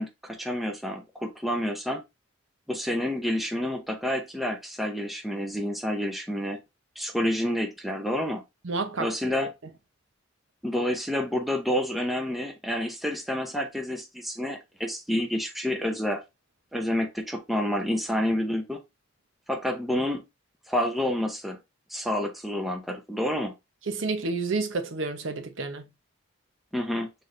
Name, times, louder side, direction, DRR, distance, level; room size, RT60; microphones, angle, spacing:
voice 1, 0.0-2.0 2.7-6.6 7.0-8.4 9.0-9.5 10.6-16.2 16.7-18.8 19.5-20.2 20.7-21.6 21.9-23.5 26.7-27.1, left 1 dB, ahead, 0.6 m, -29 dB
voice 2, 8.6-9.1 23.9-25.9, right 3 dB, 65° right, 0.8 m, -30 dB
6.1 x 3.3 x 2.5 m
head